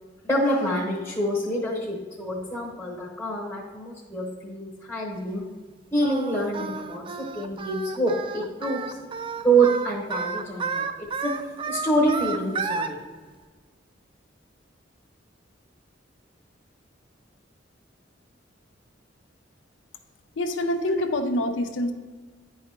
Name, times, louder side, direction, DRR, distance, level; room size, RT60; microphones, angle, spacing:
voice 1, 0.2-5.4 5.9-8.8 9.4-10.8 11.2-11.3 11.7-13.0 20.9-21.0, right 2 dB, 10° left, -4 dB, 1.0 m, -26 dB
Singing, 6.0-12.9, right 5 dB, 30° right, 0.3 m, -31 dB
voice 2, 20.4-21.9, left 1 dB, 80° left, 7 dB, 0.6 m, -26 dB
9.6 x 4.7 x 2.9 m, 1.4 s
head